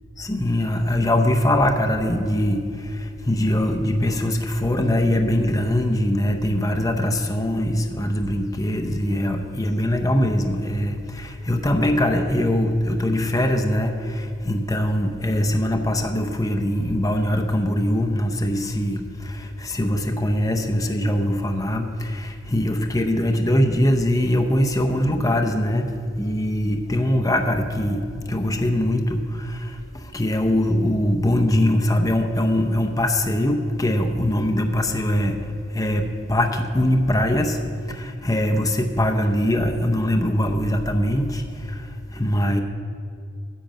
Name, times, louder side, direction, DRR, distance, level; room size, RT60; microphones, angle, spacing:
voice 1, 0.2-35.4 35.7-37.6 37.9-42.6, left 1 dB, 20° left, 5 dB, 0.7 m, -22 dB
10.0 x 6.7 x 7.4 m, 2.3 s
head